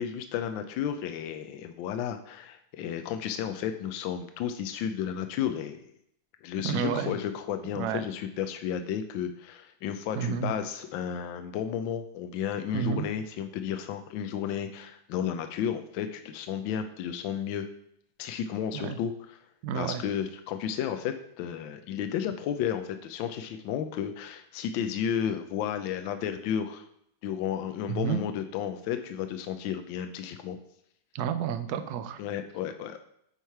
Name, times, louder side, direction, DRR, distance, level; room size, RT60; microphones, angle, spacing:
voice 1, 0.0-5.8 6.4-17.7 18.2-19.4 19.7-26.9 27.2-30.6 32.2-33.0, left 9 dB, 75° left, 7 dB, 1.3 m, -33 dB
voice 2, 6.6-7.2 7.7-8.0 10.1-10.5 12.7-13.1 18.7-19.0 19.6-20.0 27.9-28.2 31.1-32.2, right 7 dB, 70° right, 10 dB, 1.0 m, -30 dB
9.1 x 3.2 x 5.6 m, 0.71 s
omnidirectional pair, 2.3 m